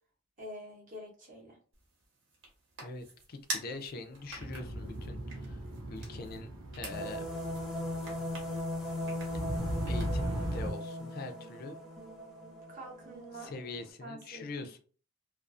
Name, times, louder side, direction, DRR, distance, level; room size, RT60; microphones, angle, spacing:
voice 1, 0.4-1.6 12.7-13.5 14.0-14.7, equal, 40° right, -1 dB, 0.7 m, -46 dB
sound 1, 1.7-10.4, right 2 dB, 60° right, 0.9 m, -47 dB
voice 2, 2.8-5.6 5.9-7.3 9.3-9.5 9.8-11.8 13.4-14.8, left 3 dB, 45° left, 7 dB, 0.4 m, -43 dB
sound 2, 4.3-10.7, right 1 dB, 90° right, 0.7 m, -38 dB
sound 3, 6.9-13.9, left 1 dB, ahead, 0.6 m, -39 dB
2.4 x 2.4 x 2.3 m, 0.40 s
head